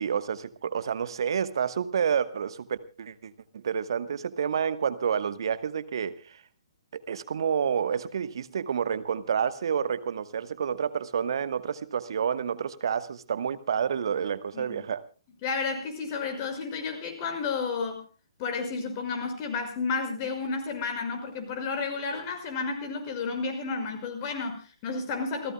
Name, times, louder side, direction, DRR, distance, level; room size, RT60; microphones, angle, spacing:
voice 1, 0.0-6.4 6.9-15.0, right 7 dB, 55° right, 14 dB, 1.2 m, -29 dB
voice 2, 15.4-18.0 18.4-25.5, left 4 dB, 35° left, 6 dB, 6.0 m, -31 dB
28.5 x 16.5 x 2.2 m, 0.35 s
figure-of-eight pair, 125°, 3 cm